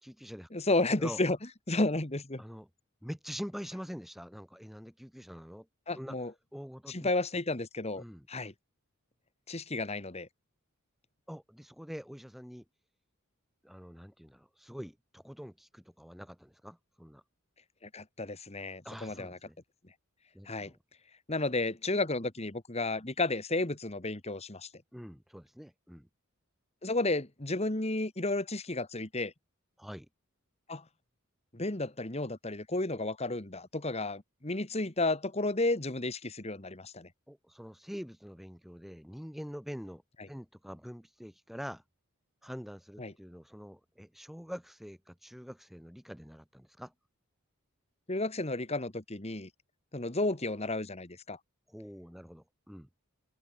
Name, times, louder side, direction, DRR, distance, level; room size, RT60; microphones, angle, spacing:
voice 1, 0.0-0.5 1.0-1.2 2.4-2.7 3.0-5.7 5.9-6.2 6.5-7.1 8.0-8.3 11.3-12.6 13.6-17.2 18.8-19.6 20.3-20.8 24.9-26.1 29.8-30.1 37.3-40.0 40.3-41.8 42.4-46.9 51.7-52.9, equal, ahead, 4.6 m, -45 dB
voice 2, 0.5-1.4 1.7-2.4 5.9-6.3 6.9-8.5 9.5-10.3 17.8-19.4 20.5-20.7 21.3-24.7 26.8-29.3 30.7-30.8 31.5-37.1 43.0-43.1 48.1-49.5 49.9-51.4, left 2 dB, 30° left, 1.8 m, -32 dB
head